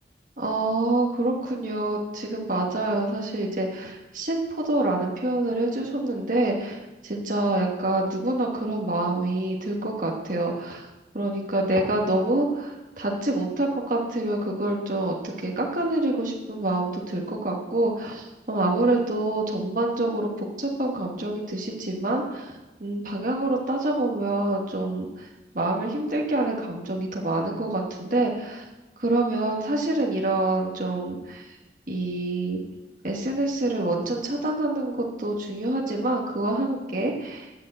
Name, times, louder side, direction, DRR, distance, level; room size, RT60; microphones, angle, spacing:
voice 1, 0.4-6.8 7.0-10.8 11.1-22.5 22.8-25.3 25.5-28.6 29.0-31.5 31.9-32.6 33.0-37.7, right 2 dB, 45° right, -2 dB, 1.5 m, -26 dB
10.5 x 6.6 x 7.7 m, 1.1 s
head